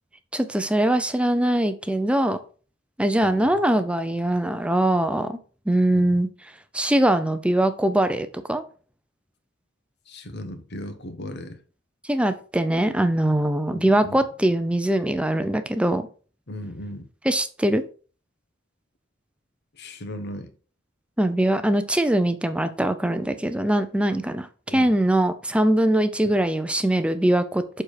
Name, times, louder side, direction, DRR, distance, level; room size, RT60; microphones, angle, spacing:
voice 1, 0.3-2.4 3.0-5.4 5.7-6.3 6.7-8.6 12.1-16.1 17.3-17.8 21.2-27.8, right 1 dB, 5° right, 0.6 m, -22 dB
voice 2, 3.2-3.6 5.9-6.2 10.1-11.6 13.7-14.2 16.5-17.1 19.7-20.5 24.7-24.9 26.3-26.4, left 1 dB, 55° left, 1.1 m, -37 dB
7.0 x 4.4 x 4.8 m
head